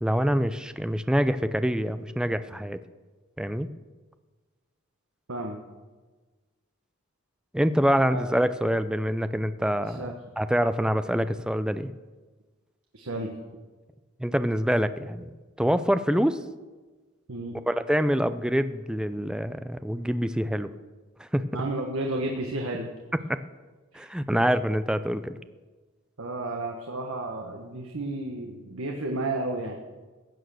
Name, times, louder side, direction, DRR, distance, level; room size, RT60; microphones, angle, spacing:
voice 1, 0.0-2.8 3.4-3.7 7.5-10.1 10.4-11.9 14.2-15.3 15.6-16.4 17.7-20.7 21.2-21.4 23.1-23.4 23.9-25.4, equal, 5° right, 12 dB, 0.5 m, -25 dB
voice 2, 12.9-13.3 17.3-17.6 21.5-22.9 23.9-24.1 26.2-29.8, right 2 dB, 85° right, 2 dB, 1.3 m, -32 dB
15.5 x 9.1 x 6.4 m, 1.3 s
head